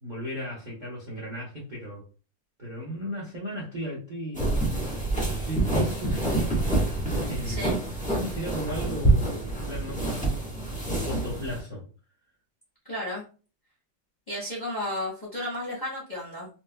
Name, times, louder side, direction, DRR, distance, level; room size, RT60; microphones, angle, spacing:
voice 1, 0.0-2.1 2.6-4.6 5.4-6.5 7.3-7.6 8.1-10.4 10.9-11.8, equal, 35° right, -4 dB, 0.7 m, -35 dB
sound 1, 4.4-11.6, right 2 dB, 5° left, 0.8 m, -27 dB
voice 2, 7.4-7.8 12.9-13.2 14.3-16.5, left 1 dB, 35° left, -5 dB, 0.8 m, -33 dB
4.3 x 2.1 x 2.2 m, 0.35 s
omnidirectional pair, 2.1 m